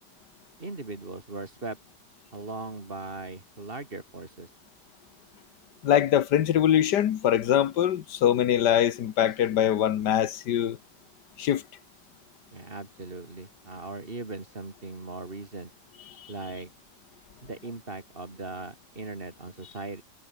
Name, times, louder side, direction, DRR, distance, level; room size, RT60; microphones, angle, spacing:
voice 1, 0.6-1.8 2.3-4.5 12.5-15.7 16.3-16.7 17.4-20.0, right 2 dB, 30° right, 3.6 m, -39 dB
voice 2, 5.8-10.8 11.4-11.6 16.2-16.3, left 10 dB, 80° left, 1.7 m, -23 dB
omnidirectional pair, 1.8 m